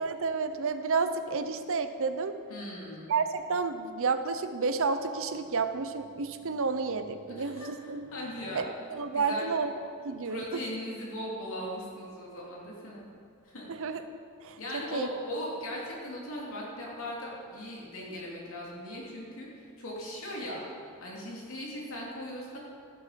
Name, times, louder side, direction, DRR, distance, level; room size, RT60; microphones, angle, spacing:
voice 1, 0.0-2.3 3.1-8.1 8.5-9.7 10.0-10.6 13.7-14.0 14.4-15.1, right 4 dB, 65° right, 9 dB, 0.7 m, -31 dB
voice 2, 2.5-3.1 7.3-8.7 9.1-9.5 10.2-13.0 13.4-13.7 14.6-20.6 21.0-22.6, left 1 dB, 65° left, -4 dB, 3.1 m, -39 dB
15.0 x 7.5 x 5.2 m, 2.3 s
head